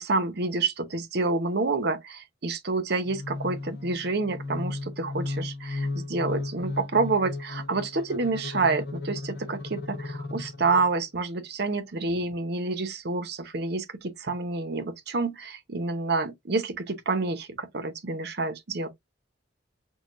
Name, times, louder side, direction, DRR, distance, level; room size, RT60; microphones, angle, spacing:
voice 1, 0.0-18.9, right 3 dB, 60° right, 0.8 m, -28 dB
sound 1, 3.1-11.0, left 3 dB, 65° left, 0.8 m, -35 dB
6.2 x 2.3 x 2.4 m
head